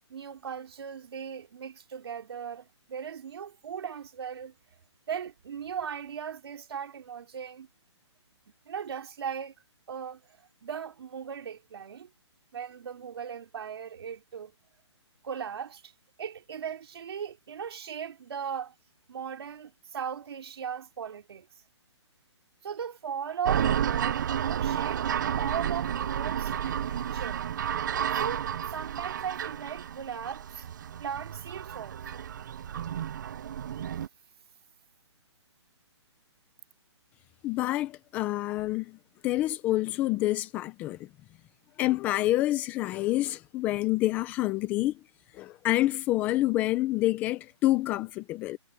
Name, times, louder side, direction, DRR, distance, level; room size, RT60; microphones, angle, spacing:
voice 1, 0.1-4.5 5.1-7.7 8.7-9.5 9.9-10.2 10.6-12.1 12.5-14.5 15.2-15.9 16.2-18.7 19.1-21.5 22.6-27.4 28.1-30.7 31.0-32.3, right 7 dB, 60° right, 3.9 m, -38 dB
sound 1, 23.5-34.1, right 9 dB, 40° right, 0.6 m, -31 dB
voice 2, 37.4-39.0 39.2-41.0 41.8-45.0 45.3-48.6, left 16 dB, 10° left, 0.6 m, -27 dB
hypercardioid pair, 170°, 15 cm